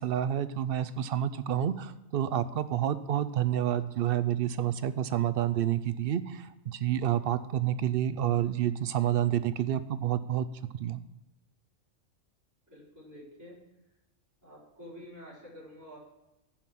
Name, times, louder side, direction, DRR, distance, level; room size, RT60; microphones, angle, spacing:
voice 1, 0.0-10.5 10.8-11.0, right 10 dB, 60° right, 14 dB, 0.6 m, -29 dB
voice 2, 12.7-13.6 14.4-16.0, equal, 15° right, -8 dB, 4.3 m, -48 dB
9.7 x 6.0 x 7.3 m, 0.95 s
omnidirectional pair, 1.3 m